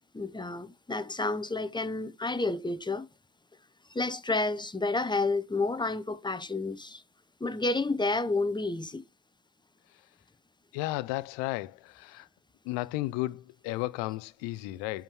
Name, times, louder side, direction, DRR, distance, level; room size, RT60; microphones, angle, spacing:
voice 1, 0.1-3.1 3.9-7.0 7.4-9.0, left 3 dB, 10° left, 0.8 m, -30 dB
voice 2, 10.7-12.3 12.6-15.0, left 18 dB, 80° left, 0.7 m, -33 dB
5.6 x 5.2 x 6.0 m
supercardioid pair, 65°, 42 cm